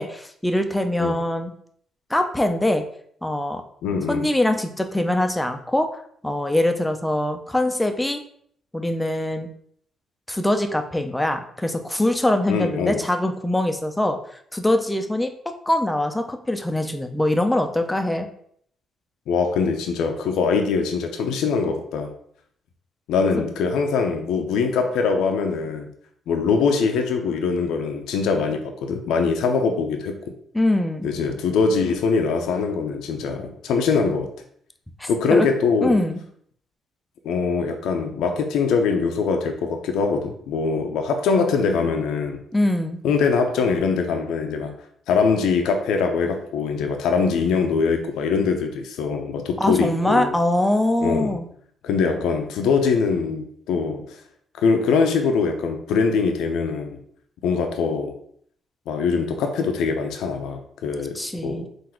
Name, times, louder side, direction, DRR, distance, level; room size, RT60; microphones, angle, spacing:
voice 1, 0.0-1.5 2.1-2.8 3.2-3.6 4.1-8.2 8.7-9.5 10.3-15.3 15.7-18.3 30.5-31.1 35.0-35.5 35.8-36.2 42.5-43.0 49.6-51.5 61.1-61.7, left 1 dB, 10° left, 6 dB, 0.5 m, -23 dB
voice 2, 3.8-4.3 12.5-13.0 19.3-22.1 23.1-25.9 26.3-30.1 31.0-34.3 35.1-36.0 37.2-42.4 43.0-44.7 45.1-50.3 51.0-51.4 51.8-54.2 54.6-57.0 57.4-58.2 58.9-61.6, left 5 dB, 85° left, 4 dB, 0.5 m, -22 dB
3.9 x 2.6 x 4.3 m, 0.64 s
cardioid pair, 90°, 0 cm